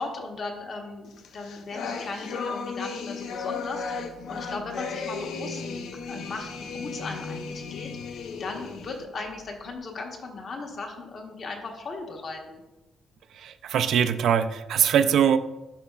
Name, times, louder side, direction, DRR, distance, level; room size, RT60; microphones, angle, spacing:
voice 1, 0.0-5.6 6.1-12.6, left 3 dB, 45° left, 2 dB, 1.0 m, -37 dB
sound 1, 1.2-9.0, left 5 dB, 85° left, 0.5 m, -35 dB
sound 2, 3.8-9.8, left 2 dB, 5° right, 0.6 m, -44 dB
voice 2, 13.4-15.4, right 8 dB, 75° right, 10 dB, 0.3 m, -22 dB
11.0 x 4.0 x 2.3 m, 1.0 s
cardioid pair, 140°, 0 cm